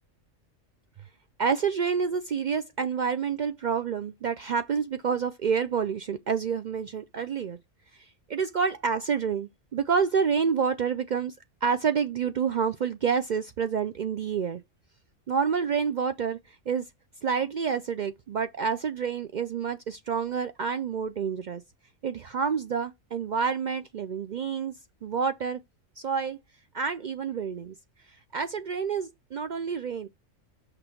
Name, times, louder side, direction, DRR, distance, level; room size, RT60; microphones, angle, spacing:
voice 1, 1.4-7.6 8.0-11.3 11.6-14.6 15.3-16.9 17.2-21.6 22.0-24.7 25.0-25.6 26.0-26.4 26.7-27.8 28.3-30.1, right 6 dB, 75° right, 0.4 m, -28 dB
6.0 x 3.3 x 5.6 m
omnidirectional pair, 1.4 m